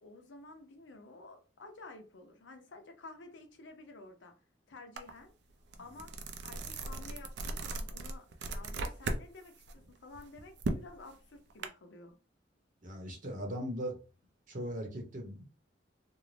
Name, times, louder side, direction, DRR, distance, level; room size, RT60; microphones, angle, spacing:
voice 1, 0.0-4.3 4.7-5.3 5.8-6.1 6.4-12.2, left 2 dB, 70° left, 0.6 m, -52 dB
sound 1, 5.0-5.1 5.5-9.2 9.6-11.7, right 2 dB, 65° right, 0.4 m, -37 dB
voice 2, 12.8-13.9 14.5-15.4, equal, 45° right, 0.8 m, -39 dB
2.6 x 2.0 x 3.2 m
head